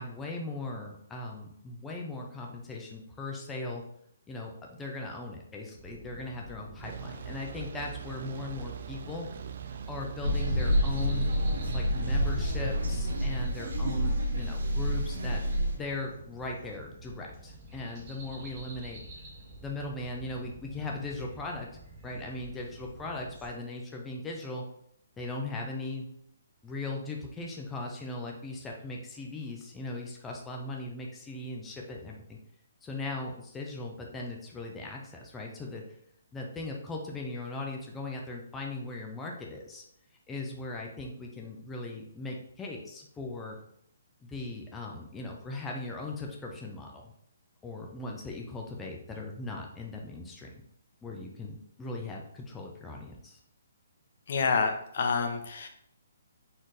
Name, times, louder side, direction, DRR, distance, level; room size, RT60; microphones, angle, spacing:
voice 1, 0.0-3.8 4.3-9.3 9.7-11.3 11.7-15.4 15.7-19.0 19.6-21.7 22.0-24.6 25.2-26.1 26.6-32.4 32.8-35.8 36.3-39.8 40.3-43.6 44.2-47.0 47.6-50.5 51.0-53.4, left 2 dB, 10° left, -1 dB, 0.6 m, -39 dB
sound 1, 5.7-23.5, right 2 dB, 30° right, 1.2 m, -48 dB
sound 2, 6.8-14.8, right 8 dB, 55° right, 0.3 m, -44 dB
sound 3, 10.2-15.8, equal, 75° right, 1.0 m, -28 dB
voice 2, 54.3-55.7, left 5 dB, 55° left, 5 dB, 0.7 m, -28 dB
4.3 x 3.1 x 4.0 m, 0.70 s
hypercardioid pair, 155°, 0 cm